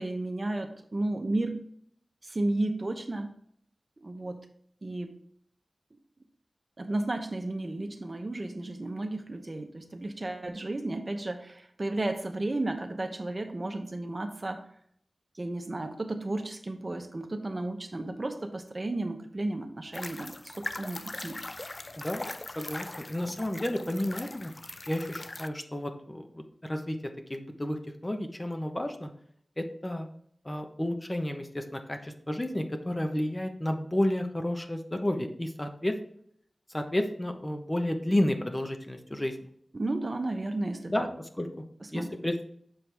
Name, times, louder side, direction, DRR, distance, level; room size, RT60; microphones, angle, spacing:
voice 1, 0.0-1.6 2.2-3.4 4.0-4.4 4.8-5.1 6.8-14.6 15.3-21.4 39.7-41.1 41.8-42.1, right 2 dB, 45° right, 6 dB, 0.8 m, -33 dB
sound 1, 19.9-25.5, left 2 dB, 40° left, 0.3 m, -40 dB
voice 2, 22.6-24.5 24.9-27.0 27.3-29.1 29.6-30.1 30.4-35.9 36.7-39.4 40.9-41.1 41.4-41.6 41.9-42.3, left 1 dB, 25° left, 5 dB, 1.0 m, -31 dB
7.2 x 4.6 x 3.4 m, 0.65 s
cardioid pair, 45°, 0 cm